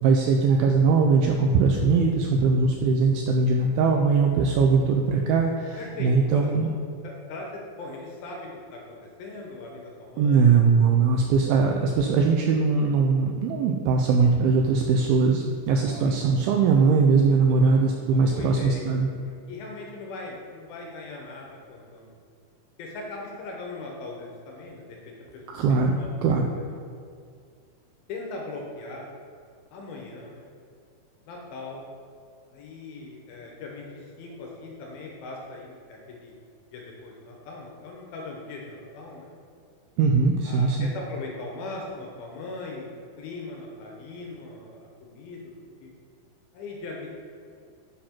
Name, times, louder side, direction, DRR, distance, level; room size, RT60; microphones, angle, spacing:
voice 1, 0.0-6.7 10.2-19.1 25.5-26.5 40.0-40.9, right 4 dB, 85° right, 2 dB, 2.1 m, -21 dB
voice 2, 5.8-6.5 7.0-10.5 15.8-16.1 17.5-17.8 18.1-19.0 19.5-22.1 22.8-25.0 25.3-25.4 25.7-26.4 28.1-29.1 29.7-30.5 31.3-31.9 32.5-36.3 36.7-39.3 40.4-42.9 43.2-45.4 45.8-45.9 46.5-47.1, left 3 dB, 75° left, -1 dB, 2.5 m, -39 dB
7.6 x 5.8 x 4.3 m, 2.2 s
omnidirectional pair, 4.7 m